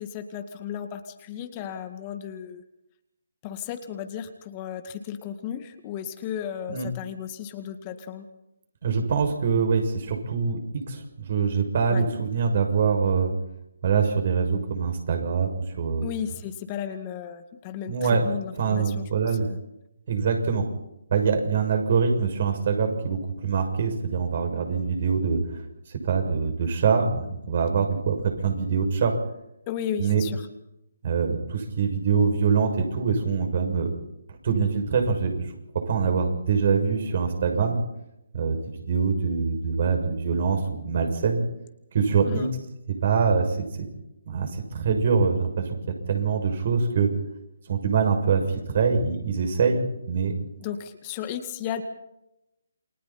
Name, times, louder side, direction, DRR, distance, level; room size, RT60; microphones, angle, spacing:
voice 1, 0.0-2.6 3.4-8.3 11.9-12.1 16.0-19.6 29.7-30.5 42.2-42.5 50.6-51.8, left 9 dB, 25° left, 7 dB, 2.1 m, -34 dB
voice 2, 8.8-13.3 13.8-16.1 17.9-18.3 18.6-19.5 20.1-20.6 21.1-25.6 25.9-29.1 30.0-30.2 31.0-33.9 34.4-35.4 35.9-37.8 38.3-41.4 41.9-42.5 42.9-43.9 44.3-45.8 46.1-47.1 47.7-50.3, right 5 dB, 50° right, 4 dB, 6.8 m, -24 dB
29.0 x 24.5 x 4.4 m, 0.88 s
figure-of-eight pair, 145°, 0 cm